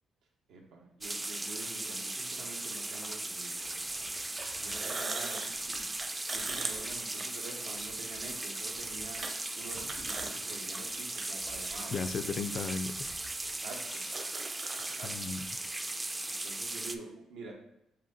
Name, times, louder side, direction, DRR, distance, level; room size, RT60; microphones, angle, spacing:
voice 1, 0.5-3.9 4.6-5.9 6.3-9.2 9.5-11.9 13.4-14.1 14.9-15.1 16.3-17.5, right 3 dB, 90° right, 0 dB, 1.1 m, -47 dB
sound 1, 1.0-17.0, right 2 dB, 15° right, 0.3 m, -38 dB
sound 2, 1.6-1.7 2.9-3.1 4.5-7.8 8.2-8.3 9.2-9.3 9.7-10.3 10.8-10.9 11.8-11.9 12.7-12.8 13.0-13.1 13.6-13.7 13.9-15.0, right 3 dB, 40° right, 0.7 m, -39 dB
sound 3, 3.4-13.6, right 3 dB, 65° right, 1.1 m, -54 dB
voice 2, 11.9-13.2 13.9-14.0 15.0-15.7, left 5 dB, 55° left, 11 dB, 0.3 m, -36 dB
7.1 x 2.8 x 2.7 m, 0.80 s
cardioid pair, 90°, 0 cm